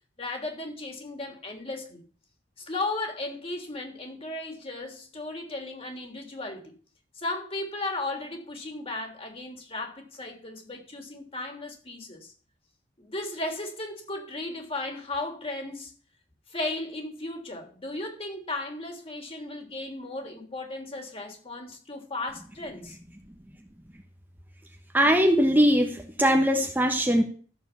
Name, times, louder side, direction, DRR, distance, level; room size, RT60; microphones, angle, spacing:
voice 1, 0.2-2.0 2.6-6.7 7.2-12.3 13.0-15.9 16.5-23.0, left 2 dB, 35° left, 3.5 m, -35 dB
voice 2, 24.9-27.2, equal, 10° right, 1.2 m, -21 dB
14.0 x 7.3 x 7.1 m
head